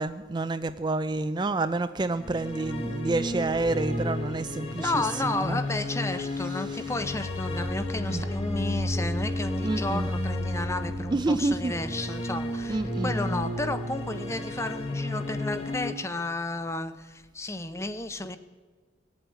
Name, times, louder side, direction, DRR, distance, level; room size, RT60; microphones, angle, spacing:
voice 1, 0.0-4.9 5.3-5.6 8.1-8.2 9.6-10.1 11.1-11.7 12.7-13.4, right 2 dB, 25° right, 10 dB, 0.4 m, -28 dB
sound 1, 2.1-15.9, left 1 dB, 30° left, 1.5 m, -32 dB
voice 2, 4.8-18.4, left 2 dB, 15° left, 11 dB, 0.7 m, -32 dB
18.5 x 7.9 x 9.2 m, 1.4 s
head